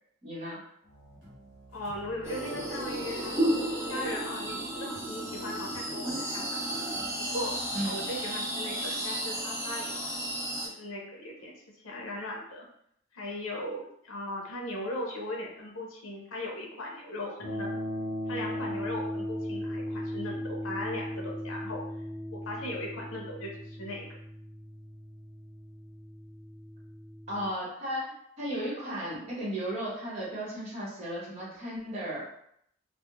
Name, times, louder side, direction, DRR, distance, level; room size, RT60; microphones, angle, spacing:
voice 1, 0.2-0.6 7.7-8.0 27.3-32.2, equal, 35° right, -7 dB, 0.8 m, -35 dB
sound 1, 0.8-7.9, equal, 60° right, 0.9 m, -54 dB
voice 2, 1.7-3.5 3.9-6.5 7.2-10.0 10.6-12.7 13.1-17.7 18.3-21.8 22.3-24.0, left 1 dB, 85° left, -1 dB, 0.6 m, -38 dB
sound 2, 2.2-10.7, right 1 dB, 15° right, 0.4 m, -33 dB
sound 3, 17.4-27.5, equal, 45° left, 0.8 m, -37 dB
2.3 x 2.0 x 3.0 m, 0.71 s
head